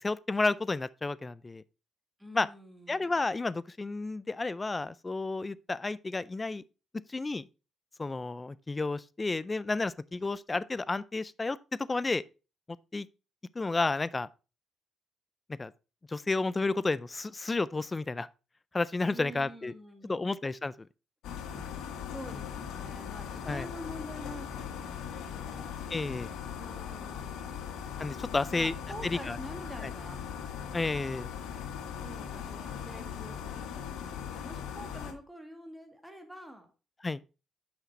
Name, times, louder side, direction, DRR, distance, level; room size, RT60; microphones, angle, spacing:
voice 1, 0.0-1.6 2.3-2.5 2.9-6.6 7.1-7.4 8.0-11.6 11.9-12.2 12.9-13.1 13.6-14.3 15.6-15.7 16.1-18.3 18.7-19.7 20.0-20.7 23.5-23.7 25.9-26.3 28.0-28.7 29.0-29.4 30.7-31.3 37.0-37.2, left 3 dB, 25° left, 0.4 m, -31 dB
voice 2, 2.2-3.2 19.0-20.4 21.5-21.8 22.0-25.8 26.6-27.8 28.4-30.3 32.0-36.7, equal, 5° right, 1.7 m, -47 dB
sound 1, 21.2-35.1, left 8 dB, 85° left, 1.1 m, -39 dB
5.8 x 5.7 x 4.2 m
cardioid pair, 90°, 0 cm